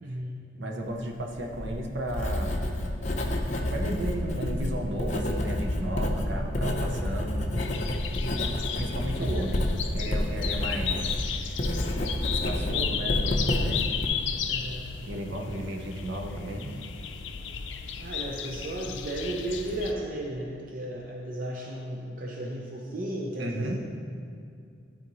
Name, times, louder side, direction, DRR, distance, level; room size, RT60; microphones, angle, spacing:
voice 1, 0.0-0.5 6.3-6.6 8.2-8.5 9.2-9.5 10.6-10.9 11.9-12.2 14.5-14.9 18.0-23.8, right 1 dB, 50° right, -2 dB, 0.6 m, -35 dB
voice 2, 0.5-2.7 3.7-7.5 8.8-9.7 9.9-11.0 12.3-13.8 15.0-16.7 23.4-23.8, right 1 dB, 80° right, 2 dB, 0.8 m, -34 dB
Writing, 1.3-14.1, left 1 dB, 40° left, 0.6 m, -29 dB
sound 1, 7.6-19.9, left 7 dB, 90° left, 0.5 m, -34 dB
12.0 x 4.3 x 3.1 m, 2.4 s
head